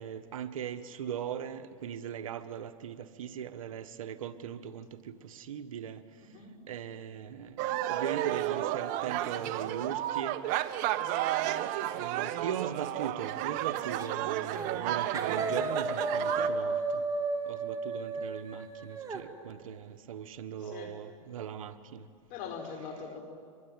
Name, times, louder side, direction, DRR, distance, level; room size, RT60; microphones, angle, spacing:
voice 1, 0.0-6.0 6.7-10.4 12.0-17.0 17.5-22.0, right 8 dB, 85° right, 1.4 m, -39 dB
voice 2, 6.2-6.5 20.6-20.9 22.3-23.2, left 6 dB, 50° left, 6.0 m, -42 dB
sound 1, 7.6-16.5, right 13 dB, 50° right, 1.3 m, -32 dB
sound 2, 14.0-14.2 14.5-14.9 15.1-19.2, right 3 dB, 20° right, 2.5 m, -33 dB
25.0 x 22.5 x 9.1 m
hypercardioid pair, 115°, 17 cm